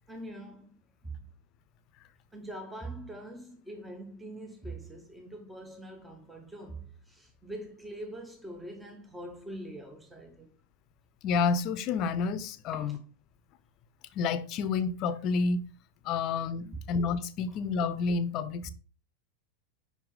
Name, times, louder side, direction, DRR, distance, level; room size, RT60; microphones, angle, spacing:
voice 1, 0.1-0.7 1.0-1.3 2.3-10.5 12.7-13.0, right 1 dB, 10° right, 1.0 m, -43 dB
voice 2, 11.2-13.0 14.1-15.6 16.0-18.7, left 5 dB, 45° left, 0.6 m, -29 dB
5.3 x 4.8 x 3.9 m
hypercardioid pair, 105°, 0 cm